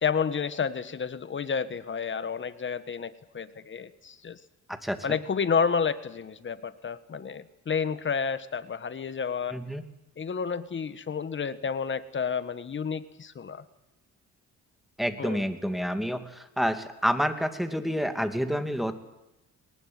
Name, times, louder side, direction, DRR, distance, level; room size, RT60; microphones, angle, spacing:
voice 1, 0.0-4.4 5.0-9.6 10.2-13.6 15.2-15.4, left 6 dB, 40° left, 13 dB, 1.5 m, -30 dB
voice 2, 9.5-9.8 15.0-18.9, equal, ahead, 8 dB, 2.6 m, -28 dB
22.0 x 19.5 x 9.5 m, 0.92 s
cardioid pair, 90°, 30 cm